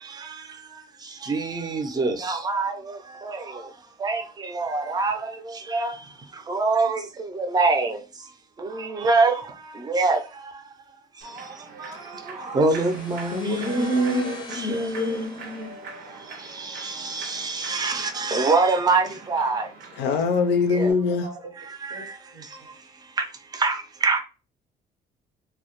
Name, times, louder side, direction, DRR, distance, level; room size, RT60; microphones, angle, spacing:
voice 1, 1.3-2.7 3.3-3.4 4.0-4.2 4.6-5.1 5.7-5.9 6.5-7.0 7.4-8.0 8.9-9.3 9.9-10.2 12.5-14.2 14.7-15.3 15.6-15.7 17.2-19.6 20.8-20.9 23.6-23.7 24.0-24.2, right 3 dB, 25° right, 0.4 m, -23 dB
Human voice / Clapping / Cheering, 11.2-20.9, right 4 dB, 65° right, 0.6 m, -43 dB
sound 1, 12.7-16.4, left 3 dB, 25° left, 0.5 m, -45 dB
voice 2, 13.3-15.3 20.0-21.2, left 5 dB, 85° left, 0.5 m, -25 dB
voice 3, 21.2-22.0 22.3-22.7, right 2 dB, 90° right, 0.9 m, -40 dB
2.1 x 2.1 x 2.9 m
cardioid pair, 110°, 17 cm